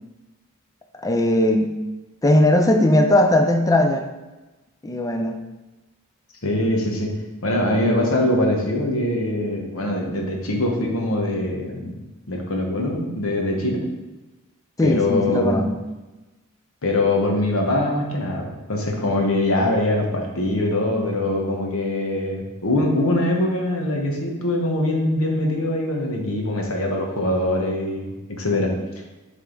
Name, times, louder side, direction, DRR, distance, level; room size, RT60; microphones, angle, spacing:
voice 1, 1.0-1.8 2.2-4.1 4.8-5.4 14.8-15.7, left 1 dB, 15° left, 5 dB, 0.5 m, -18 dB
voice 2, 6.4-7.1 7.4-12.0 12.3-13.8 14.8-15.6 16.8-28.7, left 1 dB, 65° left, 1 dB, 1.2 m, -23 dB
7.4 x 3.6 x 3.8 m, 1.1 s
head